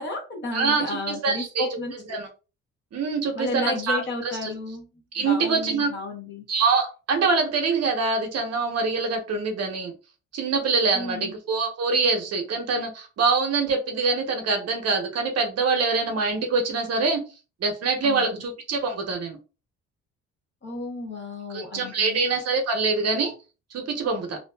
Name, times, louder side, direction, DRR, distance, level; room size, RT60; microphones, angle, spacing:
voice 1, 0.0-2.0 3.3-4.9 5.2-6.5 10.9-11.3 18.0-18.4 20.6-22.3, left 2 dB, 35° left, 1 dB, 0.8 m, -32 dB
voice 2, 0.5-1.7 2.1-2.3 2.9-4.0 4.4-4.5 5.1-5.9 6.5-9.9 10.3-17.2 17.6-19.4 21.5-23.3 23.7-24.4, right 4 dB, 55° right, 4 dB, 0.8 m, -24 dB
2.6 x 2.2 x 2.2 m, 0.32 s
cardioid pair, 90°, 30 cm